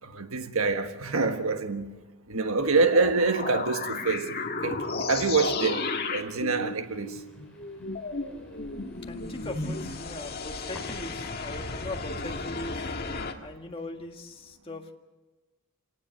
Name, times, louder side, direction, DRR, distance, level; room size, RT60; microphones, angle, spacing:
voice 1, 0.0-1.9 2.3-7.2, right 3 dB, 70° right, 1.5 m, -26 dB
sound 1, 2.9-13.3, left 3 dB, 45° left, 1.9 m, -34 dB
sound 2, 5.9-12.5, left 1 dB, 5° left, 5.4 m, -53 dB
voice 2, 9.1-13.0 13.4-14.9, left 2 dB, 25° left, 1.8 m, -40 dB
27.0 x 18.5 x 6.6 m
head